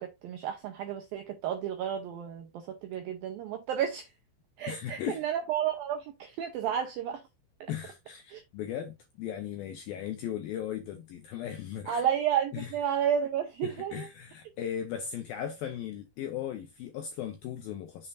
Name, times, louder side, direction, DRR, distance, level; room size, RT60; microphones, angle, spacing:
voice 1, 0.0-4.1 4.6-7.2 7.6-7.7 8.3-8.4 11.9-14.1, right 9 dB, 90° right, 2.1 m, -32 dB
voice 2, 4.7-5.2 7.7-12.0 12.5-12.7 13.6-18.1, left 9 dB, 80° left, 2.1 m, -37 dB
7.0 x 5.4 x 2.6 m
omnidirectional pair, 5.3 m